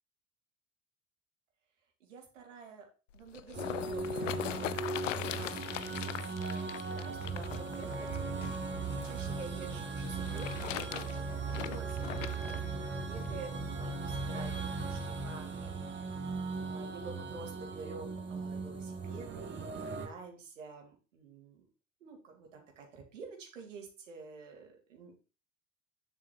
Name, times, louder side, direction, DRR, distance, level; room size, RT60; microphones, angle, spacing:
voice 1, 2.0-2.9 3.1-8.1 8.5-12.0 12.5-21.7 22.0-25.2, right 4 dB, 85° right, 2 dB, 2.4 m, -49 dB
sound 1, 3.1-9.2 10.1-12.6 13.3-13.4, left 13 dB, 80° left, 0.6 m, -40 dB
sound 2, 3.5-20.1, right 4 dB, 30° right, 2.0 m, -38 dB
9.8 x 7.3 x 2.9 m, 0.32 s
hypercardioid pair, 60°, 37 cm